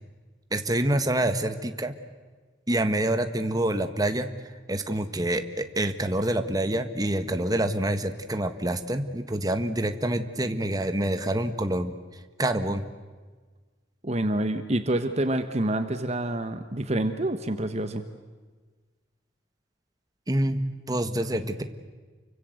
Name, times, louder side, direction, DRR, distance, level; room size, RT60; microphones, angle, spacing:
voice 1, 0.5-1.9 2.7-4.3 4.7-11.9 12.4-12.8 20.3-21.6, right 1 dB, 20° right, 8 dB, 1.5 m, -26 dB
voice 2, 14.0-18.0, right 1 dB, 35° right, 9 dB, 1.3 m, -27 dB
29.5 x 24.5 x 7.9 m, 1.4 s
head